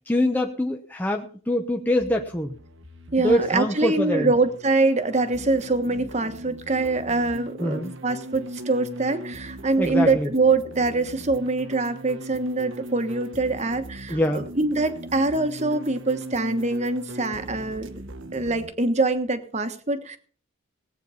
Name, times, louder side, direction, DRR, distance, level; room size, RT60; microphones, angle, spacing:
voice 1, 0.1-2.5 3.2-4.3 7.6-8.0 9.8-10.3 14.1-14.5, left 1 dB, 10° left, 3 dB, 0.9 m, -24 dB
sound 1, 2.0-18.7, right 1 dB, 70° right, 1.4 m, -39 dB
voice 2, 3.1-17.9 18.3-20.2, right 3 dB, 35° right, 9 dB, 1.4 m, -24 dB
18.0 x 9.0 x 5.7 m, 0.43 s
head